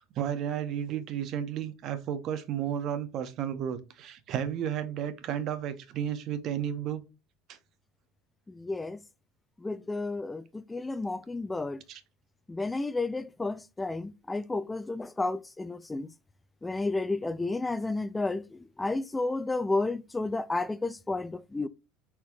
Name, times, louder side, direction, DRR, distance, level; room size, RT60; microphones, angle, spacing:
voice 1, 0.0-7.0 7.5-7.6 11.9-12.0, right 9 dB, 50° right, 0.7 m, -33 dB
voice 2, 8.5-9.0 9.6-11.8 12.5-16.1 16.6-21.7, left 2 dB, 10° left, 0.3 m, -32 dB
4.4 x 4.1 x 2.6 m
supercardioid pair, 120°, 0 cm